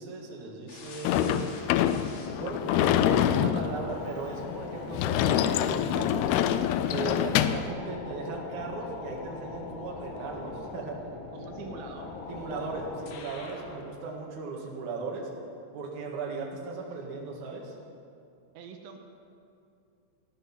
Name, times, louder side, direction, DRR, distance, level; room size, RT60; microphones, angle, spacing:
voice 1, 0.0-1.5 2.4-6.1 6.9-11.0 12.3-15.3 15.7-17.7, right 4 dB, 55° right, -1 dB, 2.6 m, -37 dB
sound 1, 0.7-13.8, left 3 dB, 65° left, 2.6 m, -42 dB
Sliding door / Slam, 1.0-7.7, left 10 dB, 85° left, 2.3 m, -26 dB
voice 2, 11.3-12.1 18.5-19.0, right 6 dB, 75° right, 4 dB, 3.2 m, -44 dB
17.0 x 11.0 x 6.0 m, 2.5 s
omnidirectional pair, 5.3 m